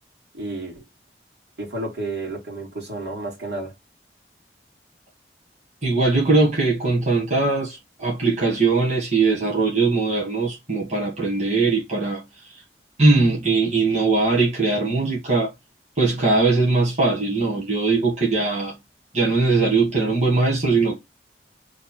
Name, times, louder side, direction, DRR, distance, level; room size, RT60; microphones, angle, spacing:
voice 1, 0.3-0.9 1.6-3.7, right 2 dB, 80° right, 1.9 m, -31 dB
voice 2, 5.8-12.2 13.0-15.5 16.0-18.7 19.1-21.0, right 3 dB, 40° right, 1.3 m, -20 dB
3.2 x 2.4 x 4.1 m
head